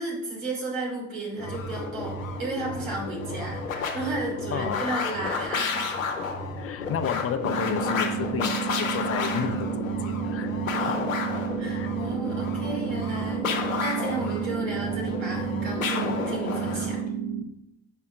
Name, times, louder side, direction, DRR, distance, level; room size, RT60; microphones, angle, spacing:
voice 1, 0.0-5.9 10.8-10.9 11.6-17.0, right 2 dB, 75° right, -3 dB, 2.8 m, -33 dB
sound 1, 1.4-17.0, left 4 dB, 90° left, 0.8 m, -31 dB
voice 2, 4.5-5.1 6.6-11.0 11.7-11.9, left 8 dB, 35° left, 9 dB, 0.7 m, -32 dB
sound 2, 7.4-17.4, right 8 dB, 55° right, 1.0 m, -31 dB
5.5 x 4.7 x 5.9 m, 0.84 s
figure-of-eight pair, 55°, 39 cm